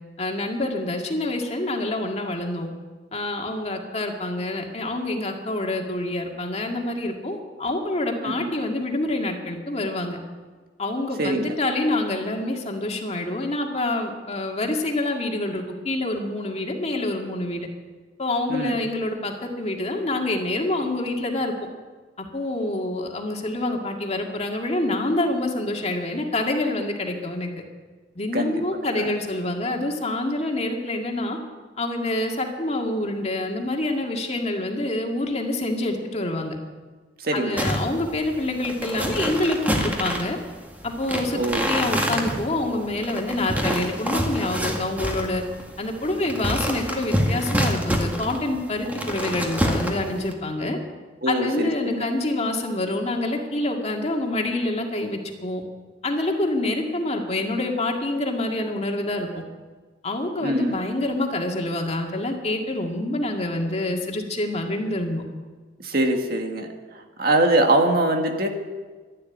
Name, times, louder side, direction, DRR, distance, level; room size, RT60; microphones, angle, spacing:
voice 1, 0.2-2.7 3.1-10.2 10.8-17.7 18.2-21.5 22.3-27.5 28.2-31.4 31.8-36.5 37.3-40.4 40.8-41.4 41.7-45.4 45.8-50.8 51.3-55.6 56.0-59.4 60.0-65.2, left 2 dB, 40° left, 1 dB, 2.1 m, -26 dB
voice 2, 11.2-11.5 18.5-18.8 28.3-28.7 28.9-29.3 37.2-37.7 41.3-41.7 51.2-52.1 60.4-60.8 65.8-68.5, right 1 dB, 60° right, 4 dB, 1.9 m, -23 dB
sound 1, 37.6-50.3, equal, 10° right, 2.0 m, -27 dB
12.5 x 11.5 x 9.7 m, 1.4 s
head